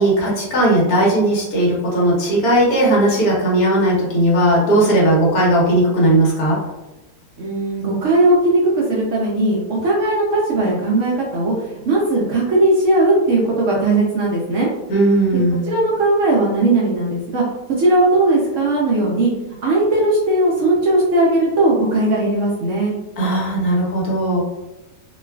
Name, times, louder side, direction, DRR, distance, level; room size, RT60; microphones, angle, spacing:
voice 1, 0.0-6.6 14.9-15.6 23.2-24.4, right 1 dB, 65° left, -4 dB, 1.4 m, -17 dB
voice 2, 7.4-14.7 15.6-17.4 17.8-19.3 19.6-22.9, right 2 dB, 65° right, -4 dB, 0.8 m, -18 dB
3.1 x 2.2 x 2.2 m, 1.0 s
omnidirectional pair, 1.7 m